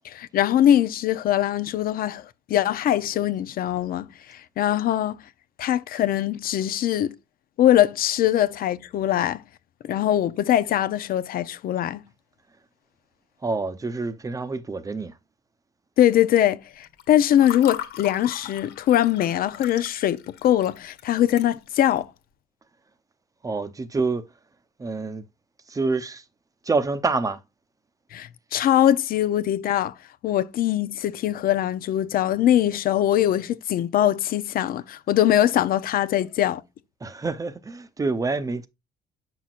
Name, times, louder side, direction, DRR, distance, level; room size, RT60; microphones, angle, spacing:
voice 1, 0.0-5.2 5.6-7.1 7.6-9.4 9.8-12.1 16.0-22.1 28.1-29.9 30.2-36.6, left 11 dB, 60° left, 0.6 m, -22 dB
voice 2, 13.4-15.1 23.4-24.3 24.8-25.2 25.7-26.2 26.6-27.4 37.0-38.7, right 3 dB, 20° right, 0.8 m, -27 dB
Water / Fill (with liquid), 16.8-22.0, left 11 dB, 80° left, 1.6 m, -39 dB
8.4 x 6.0 x 2.5 m
cardioid pair, 110°, 17 cm